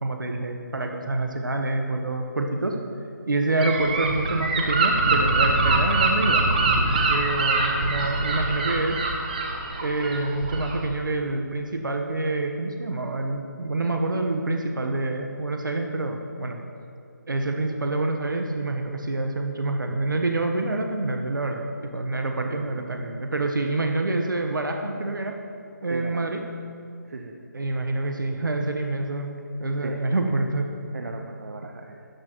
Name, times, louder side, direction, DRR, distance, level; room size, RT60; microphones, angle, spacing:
voice 1, 0.0-2.8 3.3-9.0 9.8-16.6 17.3-21.6 21.9-25.4 25.8-26.4 27.5-30.7, right 2 dB, 85° right, 4 dB, 1.1 m, -27 dB
Gull seagull / Wind, 3.6-10.9, right 3 dB, 25° right, 0.9 m, -23 dB
voice 2, 22.3-23.1 25.8-26.3 27.1-27.3 29.8-30.0 30.9-32.0, right 3 dB, 55° right, 3 dB, 0.9 m, -38 dB
13.0 x 11.0 x 3.0 m, 2.4 s
figure-of-eight pair, 170°, 10 cm